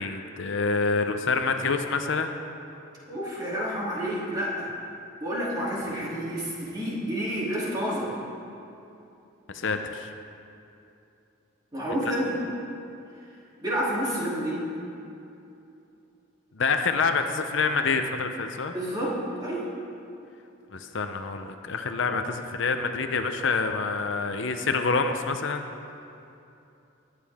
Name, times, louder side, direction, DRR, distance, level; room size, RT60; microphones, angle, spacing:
voice 1, 0.0-2.4 9.5-10.1 16.6-18.7 20.7-25.7, left 4 dB, 65° left, 6 dB, 0.7 m, -27 dB
voice 2, 3.1-4.7 5.2-8.1 11.7-12.4 13.6-14.6 18.7-19.1 19.4-19.7, equal, 20° right, -7 dB, 2.9 m, -29 dB
20.0 x 9.4 x 3.5 m, 2.7 s
head